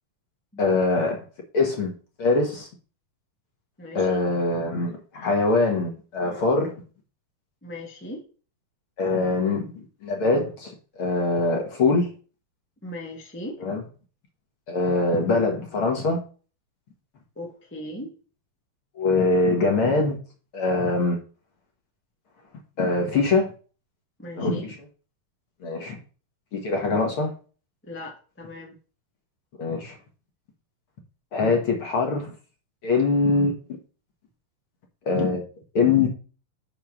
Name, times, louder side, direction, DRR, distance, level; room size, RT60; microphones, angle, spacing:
voice 1, 0.6-1.2 1.5-1.9 2.2-2.7 3.9-6.7 9.0-9.7 10.0-12.1 13.6-13.8 14.7-16.2 19.0-20.2 20.5-21.2 22.8-23.5 24.4-24.8 25.6-26.0 26.5-27.3 29.6-30.0 31.3-32.3 32.8-33.5 35.1-35.4 35.7-36.1, left 3 dB, 45° left, 1 dB, 1.9 m, -23 dB
voice 2, 3.8-4.2 7.6-8.2 12.8-13.6 17.3-18.1 24.2-24.6 27.8-28.8, left 1 dB, 15° left, 0 dB, 0.3 m, -38 dB
7.1 x 4.7 x 6.0 m, 0.37 s
omnidirectional pair, 4.1 m